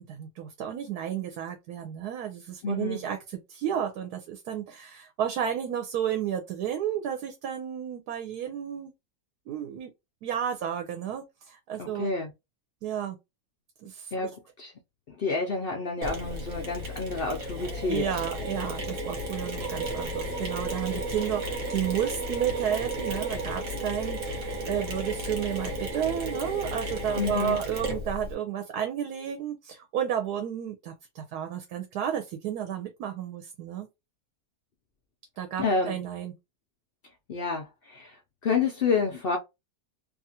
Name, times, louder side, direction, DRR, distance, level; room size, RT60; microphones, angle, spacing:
voice 1, 0.0-8.9 9.5-9.9 10.2-12.1 12.8-13.2 13.8-14.1 17.9-33.9 35.4-36.3, right 9 dB, 85° right, 1.2 m, -32 dB
voice 2, 2.6-3.0 11.8-12.3 14.1-14.7 15.1-18.1 27.2-27.6 35.6-36.0 37.3-39.4, left 4 dB, 70° left, 0.5 m, -29 dB
Mechanisms, 16.0-28.3, right 1 dB, 65° right, 1.4 m, -33 dB
2.7 x 2.4 x 2.7 m
omnidirectional pair, 1.6 m